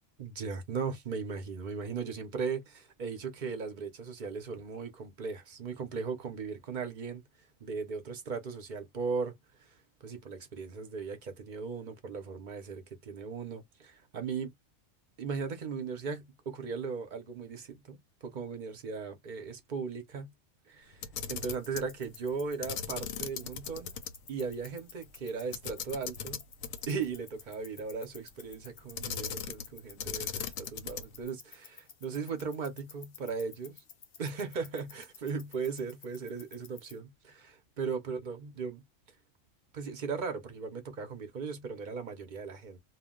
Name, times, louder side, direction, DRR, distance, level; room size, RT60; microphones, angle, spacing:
voice 1, 0.2-7.2 7.6-9.3 9.6-14.5 15.2-20.3 20.7-23.9 24.3-26.4 26.9-33.8 34.2-38.8 39.7-42.8, right 5 dB, 45° right, 0.7 m, -37 dB
Camera, 20.9-21.9 22.6-24.1 24.4-24.5 25.5-27.1 29.0-29.7 30.0-31.2, left 8 dB, 90° left, 1.0 m, -38 dB
sound 1, 21.4-37.0, left 7 dB, 55° left, 0.7 m, -55 dB
2.3 x 2.2 x 3.6 m
omnidirectional pair, 1.4 m